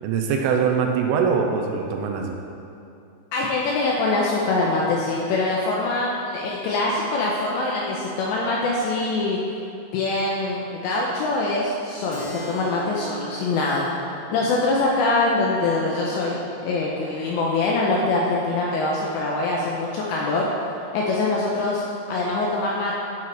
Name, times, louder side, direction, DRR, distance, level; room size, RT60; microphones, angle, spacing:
voice 1, 0.0-2.4, right 6 dB, 80° right, 2 dB, 3.1 m, -22 dB
voice 2, 3.3-9.4 9.9-13.9 14.3-20.5 20.9-22.9, left 2 dB, 85° left, -3 dB, 2.6 m, -24 dB
Keyboard (musical), 12.1-17.2, right 1 dB, 65° left, 3.1 m, -40 dB
13.0 x 5.7 x 4.6 m, 2.7 s
omnidirectional pair, 5.9 m